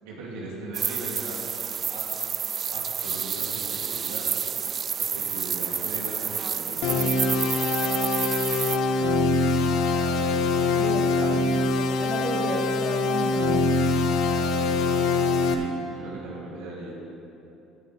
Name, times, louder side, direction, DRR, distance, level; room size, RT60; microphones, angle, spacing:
voice 1, 0.0-1.4 1.9-2.1 2.4-4.3 5.0-7.1 15.4-16.9, right 2 dB, 85° right, -4 dB, 2.8 m, -39 dB
sound 1, 0.7-8.8, right 7 dB, 40° right, 0.3 m, -29 dB
sound 2, 6.8-15.5, left 3 dB, 70° left, 0.9 m, -23 dB
voice 2, 10.8-11.3 11.8-13.9, equal, 5° right, 1 dB, 1.2 m, -34 dB
15.5 x 10.5 x 3.4 m, 2.9 s
supercardioid pair, 90°, 0 cm